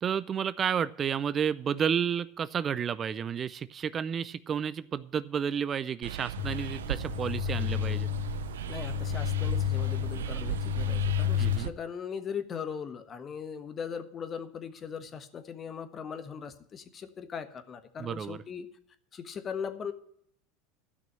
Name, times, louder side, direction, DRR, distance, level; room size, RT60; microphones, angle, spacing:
voice 1, 0.0-8.1 11.4-11.7 18.0-18.4, right 7 dB, 30° right, 17 dB, 0.4 m, -31 dB
sound 1, 6.0-11.7, right 10 dB, 90° right, 0.5 m, -36 dB
sound 2, 6.4-11.6, left 14 dB, 60° left, 0.4 m, -31 dB
voice 2, 7.5-8.0 8.7-18.7 19.1-19.9, left 7 dB, 30° left, 10 dB, 1.3 m, -39 dB
12.0 x 6.1 x 8.5 m, 0.68 s
hypercardioid pair, 105°, 0 cm